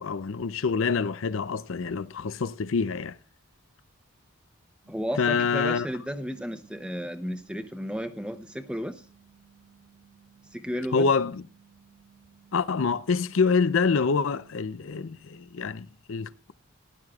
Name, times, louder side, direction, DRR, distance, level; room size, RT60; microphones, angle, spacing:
voice 1, 0.0-3.2 5.2-5.9 10.9-11.4 12.5-16.5, left 5 dB, 65° left, 0.5 m, -26 dB
sound 1, 4.8-14.8, right 8 dB, 60° right, 4.0 m, -59 dB
voice 2, 4.9-9.0 10.5-11.1, equal, 5° right, 0.7 m, -33 dB
18.5 x 11.5 x 2.3 m
head